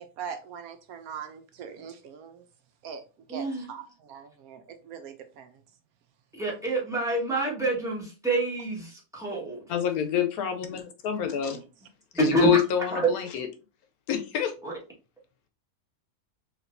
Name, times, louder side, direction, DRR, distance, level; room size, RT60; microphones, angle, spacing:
voice 1, 0.0-2.4 2.8-3.0 3.3-5.5 11.4-11.6, right 7 dB, 75° right, 1.1 m, -41 dB
voice 2, 3.3-3.7 6.3-9.6 12.1-12.6 12.9-13.1 14.6-14.7, right 2 dB, ahead, 1.3 m, -27 dB
voice 3, 9.7-11.6 12.2-13.5 14.1-14.5, left 9 dB, 75° left, 1.1 m, -27 dB
4.3 x 3.0 x 2.6 m
omnidirectional pair, 1.6 m